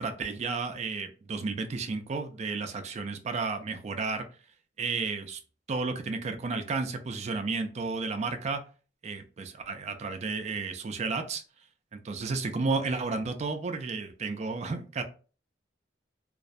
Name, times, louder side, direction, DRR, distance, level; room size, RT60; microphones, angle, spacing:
voice 1, 0.0-4.2 4.8-5.4 5.7-8.6 9.0-11.4 11.9-15.0, right 4 dB, 35° right, 7 dB, 0.4 m, -32 dB
2.3 x 2.1 x 2.5 m, 0.37 s
head